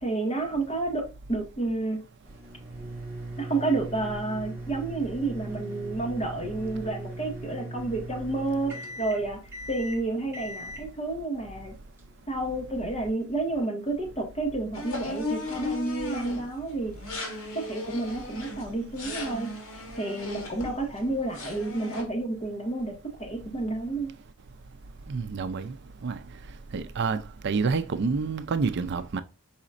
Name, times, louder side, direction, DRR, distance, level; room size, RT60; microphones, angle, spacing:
voice 1, 0.0-2.0 3.4-9.4 9.7-11.7 12.3-16.9 17.7-24.1, right 2 dB, 30° left, 1.5 m, -30 dB
sound 1, 2.2-12.6, right 2 dB, 10° right, 1.7 m, -39 dB
sound 2, 14.7-16.5 16.9-21.1 21.3-22.0, left 2 dB, 70° left, 1.7 m, -36 dB
voice 2, 25.1-25.7 26.0-26.2 26.7-29.2, right 4 dB, 55° right, 0.4 m, -28 dB
4.9 x 4.1 x 2.5 m
head